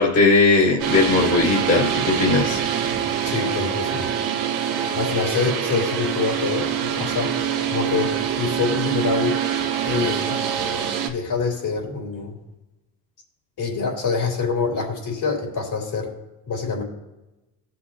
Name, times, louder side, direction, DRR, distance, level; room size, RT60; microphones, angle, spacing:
voice 1, 0.0-2.6, left 3 dB, 30° left, -4 dB, 2.1 m, -18 dB
sound 1, 0.8-11.1, right 9 dB, 75° right, 1.9 m, -24 dB
voice 2, 3.2-4.1 4.9-7.4 7.7-9.4 9.8-10.4 11.1-12.4 13.6-16.1 16.5-16.8, left 5 dB, 55° left, 0 dB, 3.8 m, -25 dB
17.0 x 6.1 x 2.9 m, 0.98 s
supercardioid pair, 80°, 48 cm